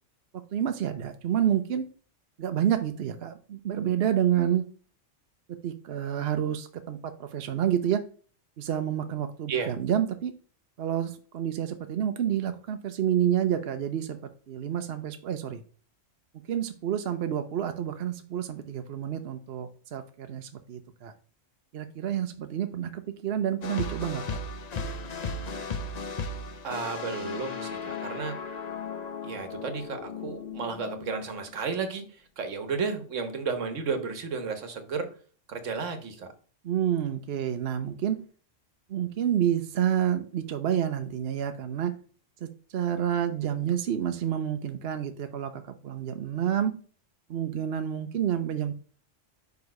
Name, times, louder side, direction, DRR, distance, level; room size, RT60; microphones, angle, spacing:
voice 1, 0.3-1.9 2.4-4.6 5.5-8.0 8.6-10.3 10.8-15.6 16.5-21.1 21.7-24.4 36.6-38.2 38.9-41.9 42.4-46.7 47.3-48.7, right 10 dB, 60° right, 8 dB, 0.8 m, -29 dB
sound 1, 23.6-31.8, left 4 dB, 40° left, 0.7 m, -36 dB
voice 2, 26.6-28.4 29.2-32.0 32.4-35.1 35.5-36.3, right 5 dB, 75° right, 8 dB, 1.4 m, -32 dB
5.2 x 4.8 x 5.2 m, 0.41 s
omnidirectional pair, 1.3 m